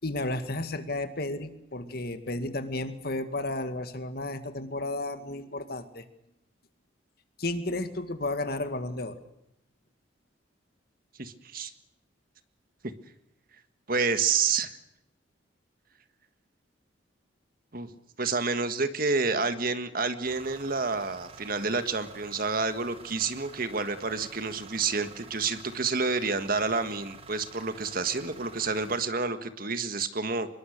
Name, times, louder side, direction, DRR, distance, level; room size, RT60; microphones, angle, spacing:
voice 1, 0.0-6.0 7.4-9.2, left 2 dB, 50° left, 9 dB, 2.1 m, -33 dB
voice 2, 11.2-11.7 13.9-14.8 17.7-17.9 18.2-30.5, right 4 dB, 45° right, 10 dB, 1.7 m, -29 dB
sound 1, 20.2-29.0, right 4 dB, 30° right, 2.1 m, -49 dB
25.0 x 22.0 x 6.6 m, 0.83 s
head